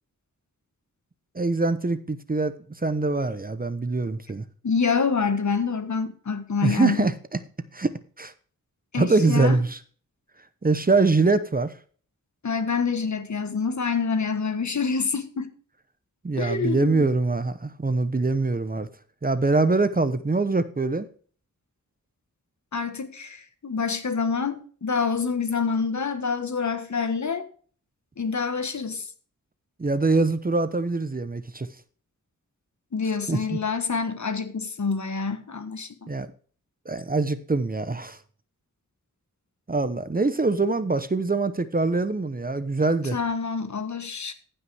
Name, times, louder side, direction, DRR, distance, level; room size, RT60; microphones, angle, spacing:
voice 1, 1.3-2.5 2.8-4.4 6.6-7.1 7.7-8.3 9.0-9.8 10.6-11.7 16.2-18.9 19.2-21.1 29.8-31.7 33.3-33.6 36.1-36.3 36.9-38.2 39.7-43.2, right 3 dB, 25° right, 0.8 m, -23 dB
voice 2, 4.6-7.1 8.9-9.6 12.4-15.5 16.4-17.1 22.7-27.5 28.2-29.1 32.9-36.1 43.1-44.3, left 5 dB, 60° left, 1.4 m, -27 dB
15.0 x 5.6 x 3.4 m
cardioid pair, 50°, 33 cm